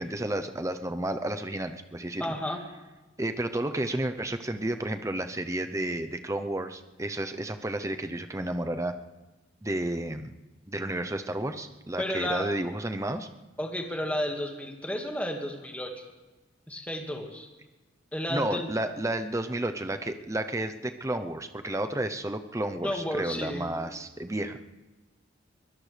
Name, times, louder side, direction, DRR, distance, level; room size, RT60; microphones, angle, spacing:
voice 1, 0.0-2.3 3.2-8.9 9.6-10.3 10.7-13.3 18.3-24.6, right 1 dB, 15° right, 8 dB, 0.7 m, -31 dB
voice 2, 2.2-2.6 12.0-12.5 13.6-15.9 16.7-17.5 18.1-18.7 22.8-23.7, equal, 5° left, 1 dB, 1.8 m, -32 dB
23.5 x 17.5 x 3.4 m, 1.1 s
head